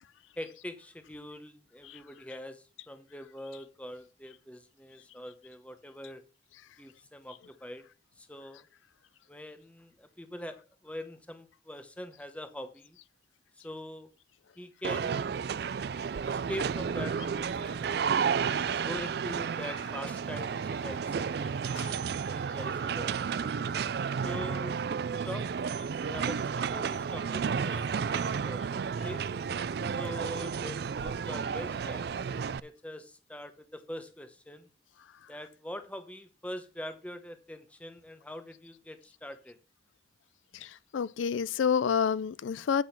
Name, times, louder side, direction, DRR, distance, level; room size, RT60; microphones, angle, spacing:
voice 1, 0.4-6.2 6.8-7.8 8.2-8.6 9.3-13.0 13.6-14.1 14.6-15.4 16.5-18.0 18.5-23.2 24.2-24.8 25.1-29.2 30.0-34.7 35.3-39.6, left 1 dB, 5° left, 0.8 m, -43 dB
sound 1, 14.8-32.6, right 6 dB, 55° right, 0.3 m, -32 dB
voice 2, 40.5-42.8, left 7 dB, 90° left, 0.4 m, -29 dB
8.4 x 6.1 x 5.8 m
head